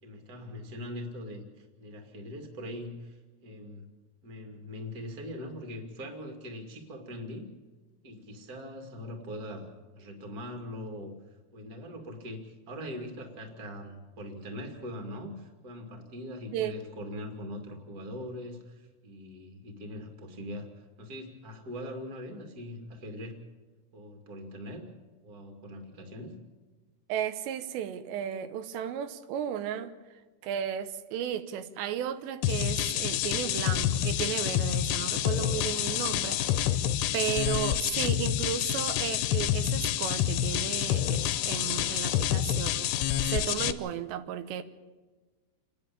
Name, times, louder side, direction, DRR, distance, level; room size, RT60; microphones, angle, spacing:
voice 1, 0.0-3.9 4.2-7.5 8.0-11.1 11.5-23.4 23.9-24.9 25.2-26.4, left 1 dB, 25° right, 4 dB, 2.3 m, -41 dB
voice 2, 27.1-29.9 30.4-36.8 37.1-44.6, right 10 dB, 90° right, 10 dB, 3.2 m, -34 dB
sound 1, 32.4-43.7, left 11 dB, 80° left, 2.8 m, -28 dB
29.5 x 10.5 x 8.6 m, 1.3 s
omnidirectional pair, 4.9 m